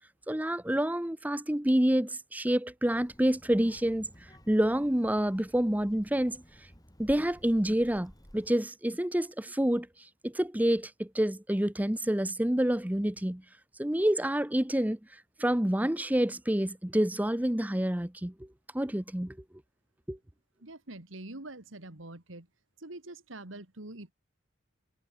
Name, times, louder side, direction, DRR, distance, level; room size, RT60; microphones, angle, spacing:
voice 1, 0.3-4.1 4.5-6.4 7.0-9.9 10.2-13.4 13.8-15.0 15.4-18.3 18.7-19.4 20.1-20.2, right 1 dB, 10° right, 0.8 m, -28 dB
Child speech kid speaking, 2.9-8.5, equal, 20° left, 7.6 m, -55 dB
voice 2, 20.6-22.5 22.8-24.1, right 2 dB, 85° right, 2.7 m, -45 dB
head